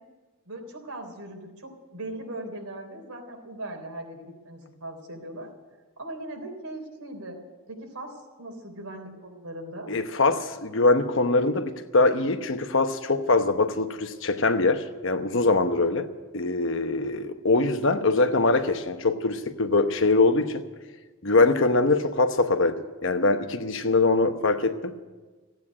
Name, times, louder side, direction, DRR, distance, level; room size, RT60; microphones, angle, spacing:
voice 1, 0.5-5.5 6.0-7.4 7.7-9.9, right 1 dB, 85° right, 3.5 m, -39 dB
voice 2, 9.9-16.1 16.3-20.6 21.2-24.9, left 3 dB, 60° left, 1.0 m, -23 dB
15.5 x 9.2 x 9.9 m
head